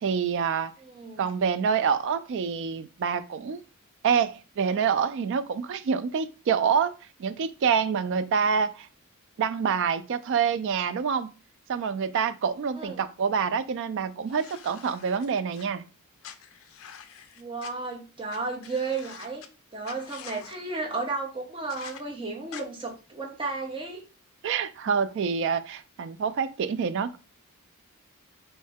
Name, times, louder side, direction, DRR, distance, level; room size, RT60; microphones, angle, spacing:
voice 1, 0.0-0.7 1.2-3.6 4.0-6.9 7.2-8.9 9.4-11.3 11.7-15.8 24.4-27.2, right 6 dB, 55° right, 0.3 m, -26 dB
voice 2, 0.8-1.2 12.8-13.1 17.4-19.4 19.7-24.0, right 3 dB, 25° right, 0.8 m, -33 dB
sound 1, 14.3-15.6 16.2-17.7 18.3-18.4 18.6-19.5 19.8-20.5 21.7-22.0 22.5-22.6, left 8 dB, 65° left, 0.4 m, -46 dB
3.1 x 2.7 x 3.4 m
head